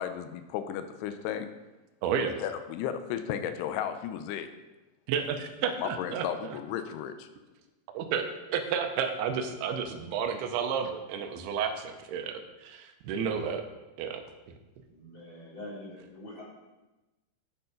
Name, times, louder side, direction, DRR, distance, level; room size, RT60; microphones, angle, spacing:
voice 1, 0.0-1.5 2.2-4.5 5.8-7.3, left 9 dB, 90° left, 8 dB, 2.7 m, -34 dB
voice 2, 2.0-2.4 5.1-6.3 7.9-13.7 14.0-14.2, right 7 dB, 85° right, 6 dB, 2.7 m, -31 dB
voice 3, 14.9-16.4, left 1 dB, 25° left, -9 dB, 4.3 m, -44 dB
9.6 x 6.9 x 5.1 m, 1.1 s
omnidirectional pair, 4.7 m